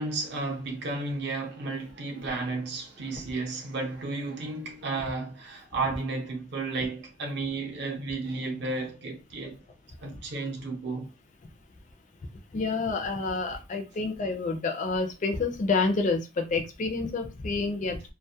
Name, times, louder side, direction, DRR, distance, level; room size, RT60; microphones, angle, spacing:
voice 1, 0.0-9.6 10.0-11.1, right 3 dB, 55° right, 0.6 m, -33 dB
voice 2, 12.5-18.1, left 3 dB, 35° left, 0.3 m, -28 dB
2.2 x 2.0 x 2.7 m
head